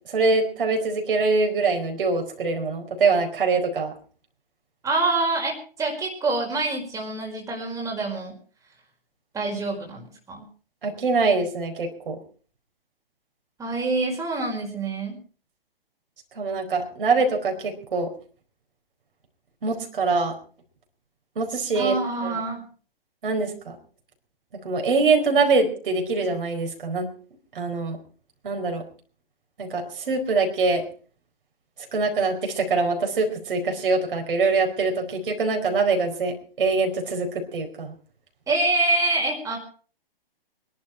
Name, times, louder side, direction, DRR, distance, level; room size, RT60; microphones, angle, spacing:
voice 1, 0.1-3.9 10.8-12.2 16.4-18.1 19.6-20.3 21.4-21.9 22.2-22.4 23.2-23.8 24.6-27.1 27.5-28.0 28.4-28.8 29.6-30.8 31.9-37.9, right 4 dB, 65° right, 3 dB, 4.6 m, -24 dB
voice 2, 4.8-8.3 9.3-10.5 13.6-15.2 21.7-22.6 38.5-39.6, right 2 dB, 10° right, -1 dB, 4.9 m, -26 dB
24.5 x 11.5 x 4.5 m, 0.41 s
figure-of-eight pair, 125°, 30 cm